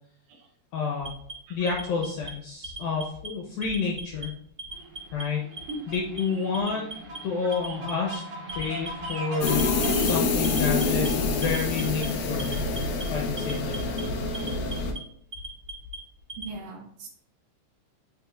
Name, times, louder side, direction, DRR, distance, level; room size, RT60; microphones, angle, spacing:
voice 1, 0.7-1.1 1.5-4.3 5.1-5.5 5.9-6.9 7.2-8.2 8.6-12.7 13.1-14.0, left 5 dB, 70° left, -1 dB, 2.4 m, -29 dB
Alarm, 1.0-2.3 2.6-3.3 3.6-4.3 4.6-5.2 5.6-6.2 6.5-7.2 7.5-8.2 8.5-9.1 9.5-10.1 10.4-11.1 11.4-12.1 12.4-13.0 13.4-14.0 14.3-15.0 15.3-16.5, right 1 dB, 25° right, 1.5 m, -39 dB
sound 1, 4.7-10.1, right 1 dB, 50° right, 1.8 m, -39 dB
sound 2, 9.4-14.9, left 3 dB, 85° left, 1.7 m, -26 dB
voice 2, 16.4-17.1, right 2 dB, 70° right, 1 dB, 2.2 m, -39 dB
8.6 x 5.5 x 2.5 m, 0.67 s
omnidirectional pair, 5.0 m